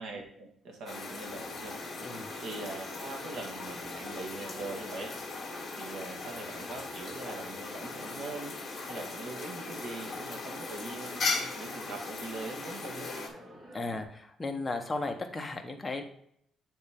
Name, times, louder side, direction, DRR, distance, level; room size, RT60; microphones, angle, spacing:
voice 1, 0.0-5.1 5.4-13.1, right 3 dB, 70° right, 2 dB, 1.4 m, -42 dB
sound 1, 0.9-13.3, left 3 dB, 30° left, 2.1 m, -38 dB
sound 2, 1.2-14.0, equal, 35° right, 2.2 m, -51 dB
voice 2, 13.7-16.0, left 3 dB, 15° left, 3 dB, 0.9 m, -35 dB
9.6 x 4.2 x 3.5 m, 0.69 s
cardioid pair, 170°, 0 cm